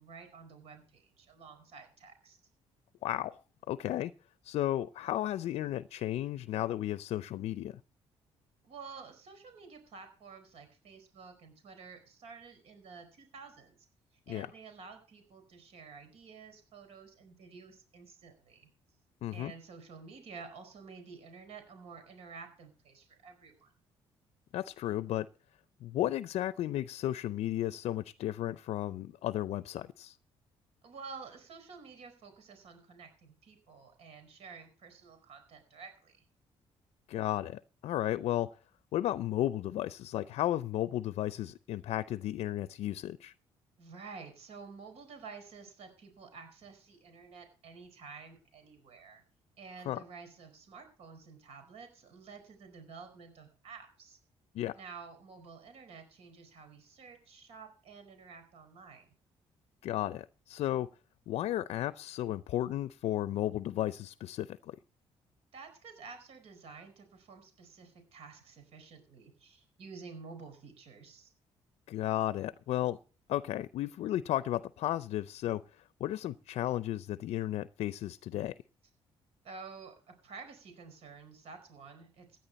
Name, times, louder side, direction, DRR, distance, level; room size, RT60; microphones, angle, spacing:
voice 1, 0.0-2.4 8.6-13.8 14.3-18.7 19.3-23.7 30.8-36.2 43.8-49.2 49.6-54.2 54.7-59.1 65.5-71.3 79.4-82.3, right 5 dB, 70° right, 4.8 m, -50 dB
voice 2, 3.0-3.4 3.7-4.1 4.4-7.8 14.3-14.5 19.2-19.5 24.5-25.3 25.8-30.2 37.1-38.5 38.9-43.3 49.9-50.0 54.5-54.8 59.8-60.9 61.3-64.8 71.9-73.0 73.3-75.6 76.0-78.5, left 13 dB, 75° left, 0.5 m, -34 dB
16.0 x 10.5 x 4.1 m
cardioid pair, 115°, 11 cm